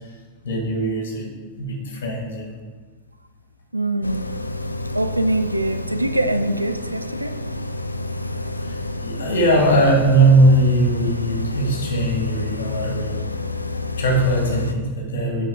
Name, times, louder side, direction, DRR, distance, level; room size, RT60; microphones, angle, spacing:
voice 1, 0.4-1.3 1.6-2.5 8.6-8.7 9.0-13.2 14.0-15.4, right 2 dB, 60° left, -1 dB, 2.1 m, -19 dB
voice 2, 3.7-4.3 4.9-7.3, right 1 dB, 85° right, 9 dB, 0.4 m, -23 dB
sound 1, 4.0-14.7, left 2 dB, 85° left, 0.3 m, -29 dB
7.0 x 5.8 x 5.1 m, 1.4 s
figure-of-eight pair, 90°, 0 cm